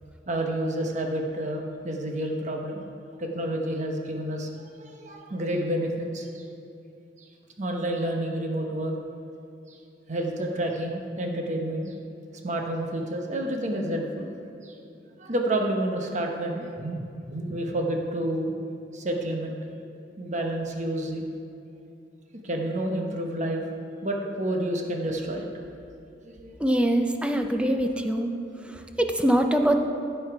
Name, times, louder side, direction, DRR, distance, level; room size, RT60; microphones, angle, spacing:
voice 1, 0.3-2.8 3.2-4.5 4.8-6.4 7.6-8.9 9.7-9.8 10.1-11.9 12.4-14.3 14.6-14.7 15.2-18.5 18.9-19.5 20.2-21.2 22.4-23.6 24.0-25.5 26.2-26.6, right 1 dB, 40° right, 2 dB, 1.0 m, -29 dB
voice 2, 26.6-28.3 28.7-29.8, right 1 dB, 5° right, 5 dB, 0.5 m, -23 dB
15.5 x 5.7 x 4.7 m, 2.6 s
head